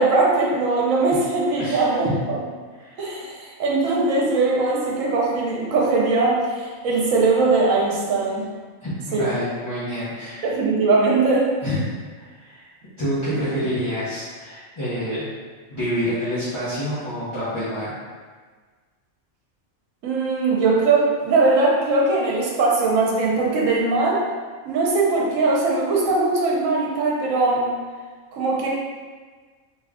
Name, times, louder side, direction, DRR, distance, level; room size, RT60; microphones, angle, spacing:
voice 1, 0.0-2.4 3.0-8.5 9.1-9.3 10.4-11.5 20.0-24.2 24.7-27.6 28.3-28.7, right 3 dB, 75° right, -3 dB, 1.1 m, -20 dB
voice 2, 1.6-2.2 2.8-3.0 8.8-10.5 11.6-11.8 12.2-12.7 13.0-15.3 15.7-17.9, equal, 30° left, -12 dB, 0.6 m, -27 dB
3.0 x 2.4 x 3.5 m, 1.4 s
omnidirectional pair, 1.4 m